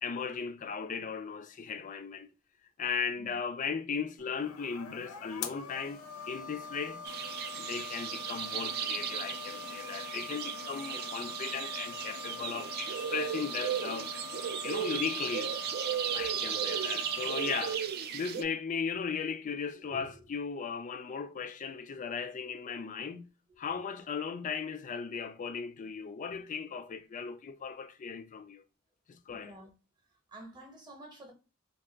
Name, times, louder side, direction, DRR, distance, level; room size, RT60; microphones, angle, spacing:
voice 1, 0.0-2.3 2.8-7.0 7.6-14.1 14.6-15.5 16.1-17.9 18.1-23.3 23.6-28.6 29.1-29.6, left 6 dB, 35° left, 0.3 m, -37 dB
sound 1, 4.2-17.7, left 5 dB, 75° left, 0.6 m, -44 dB
sound 2, 7.0-18.4, right 8 dB, 45° right, 0.3 m, -36 dB
voice 2, 29.3-29.7 30.3-31.3, equal, 20° right, 0.8 m, -49 dB
2.5 x 2.4 x 3.8 m
head